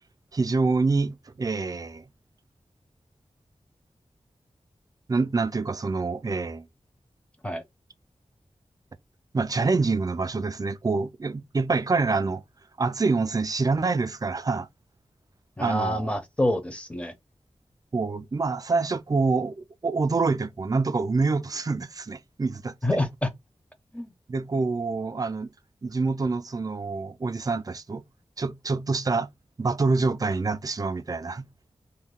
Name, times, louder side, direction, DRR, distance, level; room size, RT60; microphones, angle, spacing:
voice 1, 0.3-2.0 5.1-6.6 9.3-12.4 12.8-14.7 15.6-16.1 17.9-22.7 24.3-25.5 25.8-28.0 28.4-29.3 29.6-31.5, right 3 dB, 30° right, 0.4 m, -26 dB
voice 2, 15.6-17.1 22.8-23.3 23.9-24.1, left 1 dB, 10° left, 0.7 m, -27 dB
2.6 x 2.2 x 3.5 m
wide cardioid pair, 95°, 12 cm